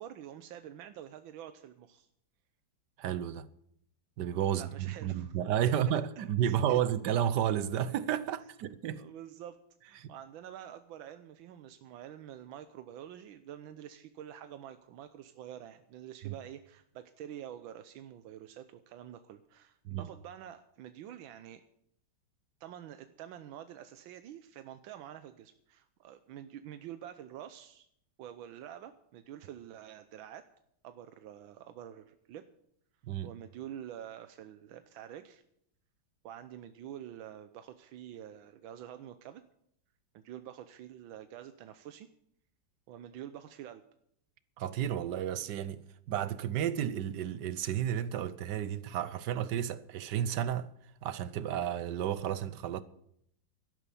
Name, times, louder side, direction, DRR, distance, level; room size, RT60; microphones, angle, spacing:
voice 1, 0.0-2.1 4.5-5.3 5.6-6.8 9.0-9.6 9.8-21.6 22.6-27.9 28.2-30.5 30.8-32.5 33.2-35.4 36.2-39.4 40.1-42.1 42.9-43.8, right 10 dB, 85° right, 1.5 m, -47 dB
voice 2, 3.0-3.5 4.2-9.1 10.0-10.1 16.2-16.3 19.8-20.1 33.1-33.3 44.6-50.7 51.0-52.8, right 10 dB, 65° right, 1.3 m, -32 dB
12.5 x 11.0 x 6.9 m
omnidirectional pair, 2.1 m